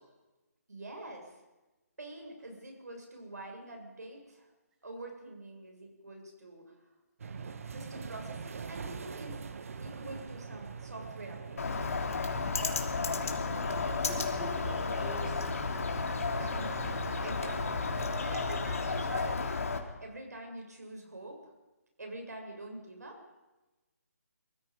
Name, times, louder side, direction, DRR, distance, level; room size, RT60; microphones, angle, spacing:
voice 1, 0.7-1.3 2.0-4.5 4.8-6.8 7.2-9.5 9.8-11.6 16.4-21.5 22.0-23.2, right 1 dB, 70° right, 2 dB, 7.6 m, -46 dB
sound 1, 7.2-19.3, right 5 dB, 55° right, 1.5 m, -44 dB
Bird, 11.6-19.8, left 4 dB, 60° left, 3.3 m, -33 dB
voice 2, 13.5-15.9, equal, 10° right, -2 dB, 6.6 m, -45 dB
24.5 x 23.0 x 5.4 m, 1.1 s
figure-of-eight pair, 145°, 9 cm